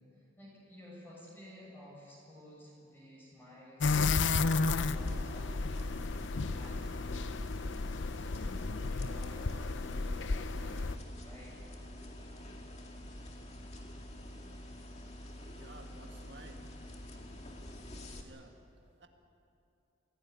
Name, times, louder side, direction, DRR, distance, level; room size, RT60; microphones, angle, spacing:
voice 1, 0.0-6.0 6.4-7.2 8.1-11.6, left 1 dB, 10° left, -5 dB, 7.1 m, -54 dB
sound 1, 3.8-11.0, left 3 dB, 70° left, 0.6 m, -33 dB
sound 2, 4.6-18.2, left 1 dB, 35° left, 2.3 m, -47 dB
voice 2, 15.5-16.7 18.2-19.1, right 2 dB, 60° right, 3 dB, 1.8 m, -54 dB
25.0 x 17.0 x 9.6 m, 2.8 s
head